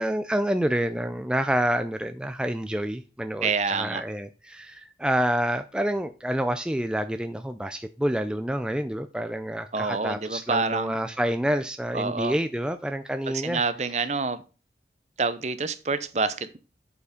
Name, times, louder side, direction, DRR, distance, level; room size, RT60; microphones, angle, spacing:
voice 1, 0.0-13.6 13.9-14.0, equal, 5° right, 0.3 m, -28 dB
voice 2, 3.4-4.0 9.7-11.0 11.9-12.4 13.3-14.4 15.2-16.6, right 4 dB, 40° right, 0.7 m, -27 dB
8.3 x 5.0 x 5.1 m
head